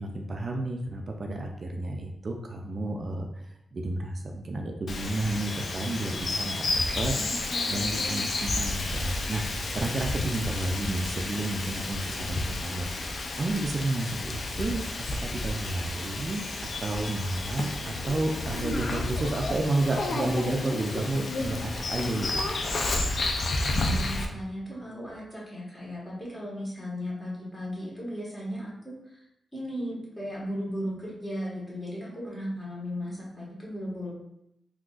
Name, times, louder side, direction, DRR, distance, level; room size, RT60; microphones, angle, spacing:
voice 1, 0.0-6.7 6.9-7.1 7.7-9.4 9.7-13.0 13.4-14.8 15.1-16.4 16.8-22.4, right 2 dB, 45° right, 2 dB, 0.4 m, -31 dB
Bird vocalization bird call bird song, 4.9-24.2, left 2 dB, 60° left, 0.5 m, -31 dB
voice 2, 7.2-8.2 23.6-29.2 29.5-34.2, equal, 20° left, -6 dB, 1.5 m, -36 dB
3.7 x 2.7 x 2.4 m, 0.81 s
cardioid pair, 80°, 0 cm